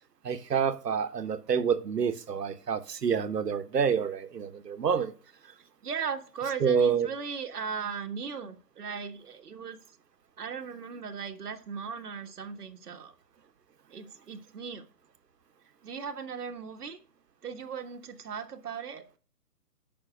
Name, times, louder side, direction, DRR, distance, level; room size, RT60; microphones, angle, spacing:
voice 1, 0.2-5.1 6.6-7.1, right 6 dB, 90° right, 1.2 m, -27 dB
voice 2, 5.8-9.8 10.4-13.1 13.9-14.9 15.8-17.0 17.4-19.0, right 6 dB, 70° right, 1.5 m, -37 dB
7.7 x 5.7 x 6.0 m
hypercardioid pair, 170°, 47 cm